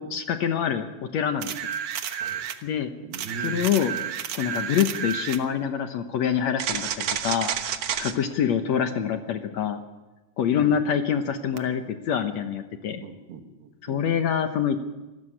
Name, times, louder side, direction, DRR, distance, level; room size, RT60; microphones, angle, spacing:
voice 1, 0.0-1.5 2.6-2.9 3.4-4.0 4.3-7.5 8.0-9.8 10.4-13.0 13.8-14.8, left 8 dB, 70° left, 7 dB, 1.7 m, -25 dB
sound 1, 1.4-2.6 3.1-5.4 6.6-8.1 11.6-11.7, right 9 dB, 65° right, 1.6 m, -30 dB
voice 2, 3.0-3.6 10.5-10.8 13.0-14.0, right 4 dB, 85° right, 5 dB, 3.9 m, -39 dB
25.5 x 14.5 x 8.9 m, 1.1 s
omnidirectional pair, 4.4 m